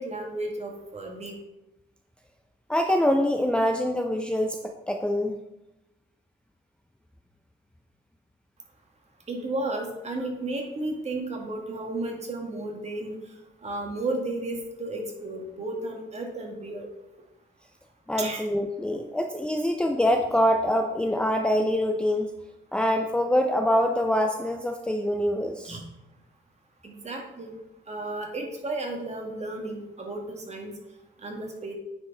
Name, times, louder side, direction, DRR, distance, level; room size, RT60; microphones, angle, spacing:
voice 1, 0.0-1.4 9.3-13.2 13.6-16.9 18.2-18.4 25.6-25.8 26.8-27.5 27.9-30.7 31.2-31.7, right 2 dB, 35° right, 1 dB, 1.9 m, -33 dB
voice 2, 2.7-5.3 18.1-22.3 22.7-25.8, equal, 5° left, 3 dB, 0.5 m, -25 dB
9.4 x 4.7 x 3.9 m, 0.93 s
cardioid pair, 90°, 20 cm